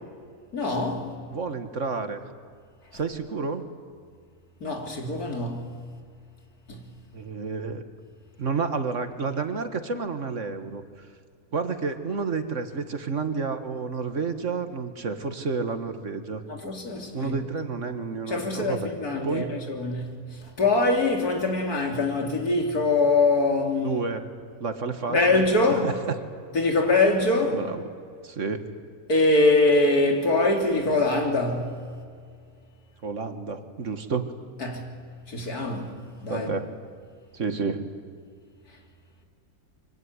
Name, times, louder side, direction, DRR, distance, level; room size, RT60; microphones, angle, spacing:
voice 1, 0.5-1.1 4.6-5.8 6.7-6.8 16.5-17.4 18.3-24.0 25.1-25.9 26.5-27.6 29.1-31.8 34.6-35.0 35.3-35.9 36.2-36.5, left 2 dB, 85° left, 3.7 m, -23 dB
voice 2, 1.3-2.2 2.9-3.7 7.1-7.8 8.4-10.8 11.5-16.4 17.1-18.9 19.2-19.5 23.8-24.3 24.6-25.4 25.7-25.9 27.5-27.8 28.2-28.6 33.0-34.3 36.3-36.7 37.3-37.9, right 4 dB, 55° right, 1.9 m, -30 dB
25.0 x 24.0 x 9.7 m
omnidirectional pair, 1.6 m